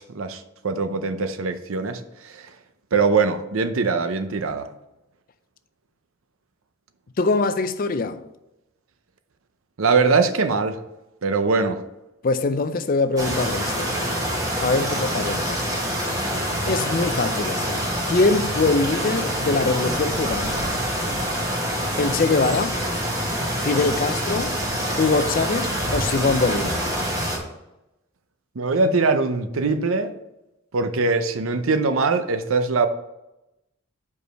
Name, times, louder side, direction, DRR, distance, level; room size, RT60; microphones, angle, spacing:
voice 1, 0.0-2.5 2.9-4.7 9.8-10.8 11.2-11.8 14.5-14.7 28.6-30.1 30.7-32.9, right 4 dB, 70° right, 0.6 m, -22 dB
voice 2, 7.2-8.2 12.2-14.2 14.6-15.7 16.7-20.7 22.0-22.7 23.6-24.6 25.0-26.9, left 3 dB, 40° left, 0.4 m, -23 dB
Flowing water very close to the river, 13.2-27.4, equal, 15° right, 1.4 m, -26 dB
5.2 x 4.8 x 6.2 m
head